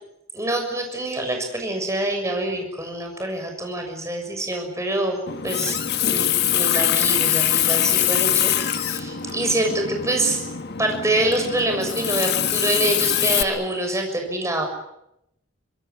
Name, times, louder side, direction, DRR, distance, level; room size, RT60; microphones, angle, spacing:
voice 1, 0.3-5.2 5.4-10.4 10.8-14.7, right 1 dB, 15° right, 3 dB, 6.7 m, -25 dB
Water tap faucet, 5.3-13.4, left 10 dB, 55° left, 1.6 m, -23 dB
25.5 x 21.0 x 9.7 m, 0.83 s
head